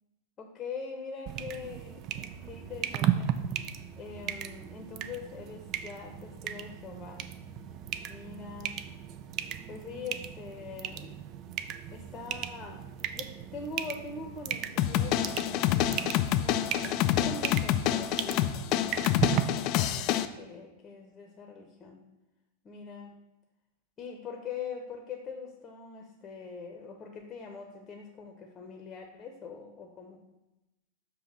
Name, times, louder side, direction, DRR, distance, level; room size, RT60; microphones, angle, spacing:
voice 1, 0.4-3.4 4.0-7.3 8.1-8.8 9.7-11.2 11.9-12.8 13.1-18.7 19.2-22.0 22.6-23.2 24.0-30.2, left 5 dB, 25° left, 3 dB, 0.8 m, -43 dB
sound 1, 1.3-19.4, right 11 dB, 35° right, 0.3 m, -36 dB
sound 2, 14.8-20.3, left 12 dB, 40° left, 0.3 m, -27 dB
6.6 x 3.0 x 5.5 m, 0.97 s
figure-of-eight pair, 90°, 0 cm